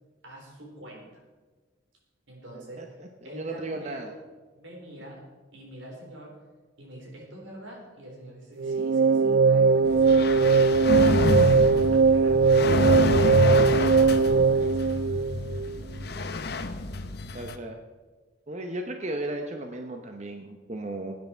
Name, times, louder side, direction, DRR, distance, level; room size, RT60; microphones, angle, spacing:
voice 1, 0.2-1.2 2.3-3.0 3.2-4.2 4.5-5.2 5.5-6.4 6.8-15.0, right 1 dB, 80° right, -1 dB, 4.2 m, -44 dB
voice 2, 2.5-4.1 17.3-17.8 18.5-21.2, right 2 dB, 35° right, 4 dB, 0.8 m, -35 dB
sound 1, 8.6-15.8, right 4 dB, 55° right, 0.3 m, -20 dB
sound 2, 9.9-17.6, left 2 dB, 55° left, 0.8 m, -28 dB
17.5 x 9.6 x 4.5 m, 1.3 s
head